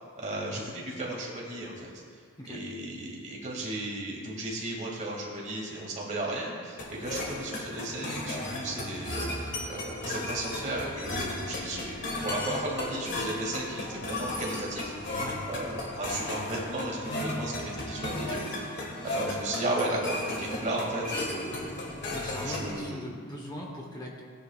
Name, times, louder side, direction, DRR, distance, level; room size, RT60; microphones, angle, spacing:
voice 1, 0.2-1.9 2.5-14.9 15.5-18.7 19.0-21.8 22.4-23.2, right 2 dB, 35° right, -3 dB, 2.5 m, -35 dB
sound 1, 6.8-22.8, left 1 dB, 50° left, 1.9 m, -35 dB
voice 2, 22.1-24.2, equal, 20° left, -1 dB, 1.2 m, -40 dB
18.5 x 9.8 x 2.5 m, 2.2 s
head